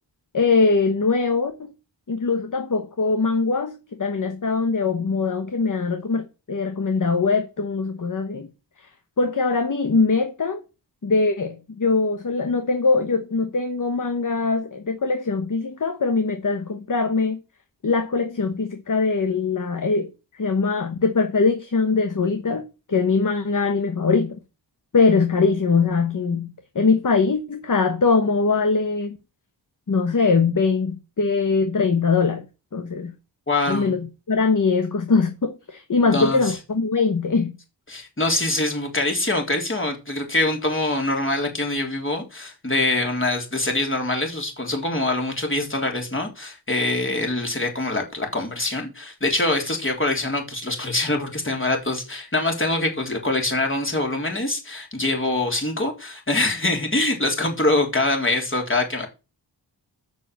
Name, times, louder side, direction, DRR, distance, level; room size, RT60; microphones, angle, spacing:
voice 1, 0.3-1.7 2.1-8.5 9.2-10.6 11.0-17.4 17.8-24.4 24.9-29.2 29.9-32.5 32.7-33.1 33.7-34.0 34.3-37.6, left 4 dB, 45° left, 1.2 m, -22 dB
voice 2, 33.5-34.0 36.1-36.6 37.9-59.1, left 2 dB, 30° left, 3.5 m, -24 dB
7.2 x 6.2 x 7.4 m
wide cardioid pair, 80°, 43 cm